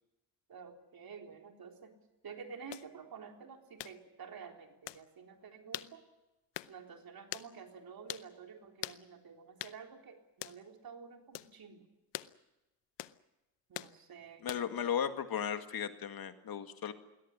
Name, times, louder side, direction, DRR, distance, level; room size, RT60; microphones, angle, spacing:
voice 1, 0.5-1.9 2.2-6.0 6.7-11.9 13.7-14.4, right 6 dB, 55° right, 3 dB, 3.8 m, -50 dB
sound 1, 2.7-2.9 3.8-4.0 4.9-5.0 5.7-5.9 6.5-6.7 7.3-7.5 8.1-8.3 8.8-9.0 9.6-9.8 10.4-10.6 11.3-11.5 12.1-12.3 13.0-13.2 13.7-13.9 14.5-14.8, left 16 dB, 80° left, 0.8 m, -42 dB
voice 2, 14.4-16.9, left 8 dB, 55° left, 8 dB, 2.1 m, -36 dB
21.5 x 17.0 x 10.0 m, 1.0 s
cardioid pair, 75°, 42 cm